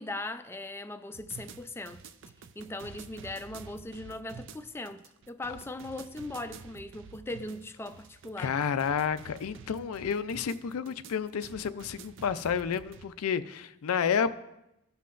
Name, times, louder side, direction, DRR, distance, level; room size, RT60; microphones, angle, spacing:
voice 1, 0.0-2.1 2.6-8.6, left 2 dB, 10° left, 0.3 m, -39 dB
sound 1, 1.1-13.1, right 5 dB, 60° right, 0.5 m, -49 dB
voice 2, 8.4-14.4, left 7 dB, 85° left, 0.4 m, -30 dB
16.5 x 5.7 x 2.5 m
head